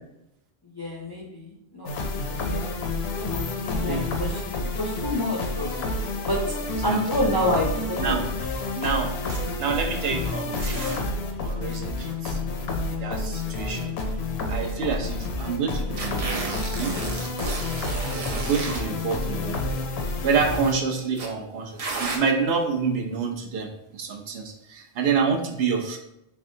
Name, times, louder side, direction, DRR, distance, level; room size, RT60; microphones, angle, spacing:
voice 1, 0.6-5.7 6.3-6.4 6.8-8.2, left 1 dB, 35° left, -2 dB, 0.3 m, -29 dB
sound 1, 1.9-20.8, left 2 dB, 75° left, 0.8 m, -29 dB
voice 2, 8.8-9.2 9.6-11.0 11.4-12.4 12.9-13.9 14.5-17.0 18.1-19.6 20.2-26.0, right 5 dB, 75° right, 3 dB, 0.8 m, -27 dB
sound 2, 9.3-9.4 10.5-11.0 12.2-13.1 13.9-14.0 14.3-14.4 15.9-18.8 19.8-20.1 21.2-21.3 21.8-22.2, right 3 dB, 45° right, 0.5 m, -33 dB
3.4 x 3.3 x 2.6 m, 0.84 s
omnidirectional pair, 1.1 m